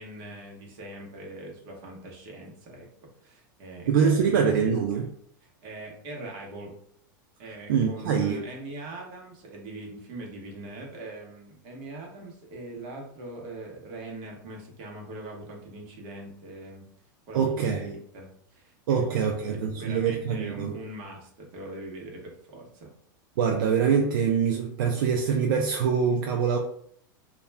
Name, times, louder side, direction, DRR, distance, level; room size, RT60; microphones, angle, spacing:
voice 1, 0.0-2.9 3.2-4.7 5.4-6.7 7.4-16.9 17.3-22.9, right 2 dB, 55° right, 0 dB, 0.9 m, -42 dB
voice 2, 3.9-5.1 7.7-8.4 17.3-17.9 18.9-20.7 23.4-26.6, right 6 dB, 80° right, 2 dB, 0.4 m, -24 dB
2.3 x 2.2 x 3.2 m, 0.65 s
hypercardioid pair, 115°, 11 cm